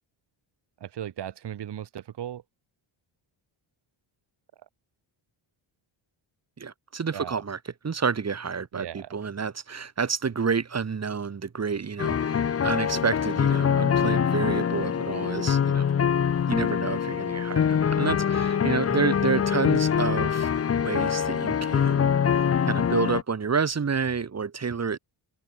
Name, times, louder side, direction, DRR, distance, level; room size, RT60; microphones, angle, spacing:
voice 1, 0.8-2.4 7.1-7.4 8.7-9.1, right 10 dB, 55° right, 1.2 m, -37 dB
voice 2, 6.6-15.9 16.5-25.0, right 5 dB, 30° right, 1.7 m, -29 dB
sound 1, 12.0-23.2, left 7 dB, 30° left, 0.6 m, -24 dB
wide cardioid pair, 145°, 49 cm